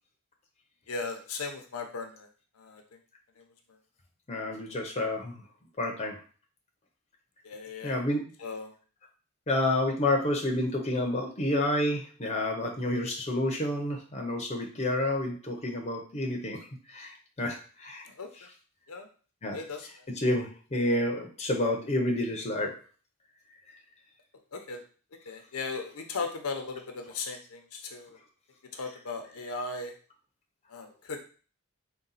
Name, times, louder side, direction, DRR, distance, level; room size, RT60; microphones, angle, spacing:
voice 1, 0.9-2.3 2.6-2.8 3.4-3.5 7.4-8.0 8.4-8.7 18.0-18.5 18.9-19.1 19.5-20.1 24.5-24.8 25.2-28.2 28.7-29.9 30.7-31.2, left 4 dB, 80° left, 4 dB, 0.7 m, -37 dB
voice 2, 4.3-5.4 5.8-6.2 7.8-8.3 9.5-16.6 16.9-18.1 19.4-19.6 20.2-22.7, left 1 dB, 30° left, 0 dB, 0.6 m, -29 dB
3.9 x 2.2 x 4.0 m, 0.39 s
head